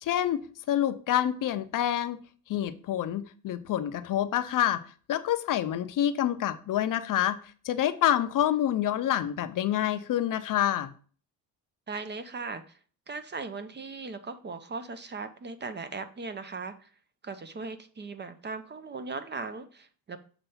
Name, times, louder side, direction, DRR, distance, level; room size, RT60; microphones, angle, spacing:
voice 1, 0.0-2.2 2.5-4.8 5.1-7.4 7.6-10.9, left 11 dB, 55° left, 11 dB, 0.6 m, -27 dB
voice 2, 11.9-12.8 13.1-16.9 17.2-20.2, right 4 dB, 30° right, 10 dB, 0.6 m, -38 dB
6.9 x 3.3 x 5.6 m, 0.41 s
cardioid pair, 105°, 38 cm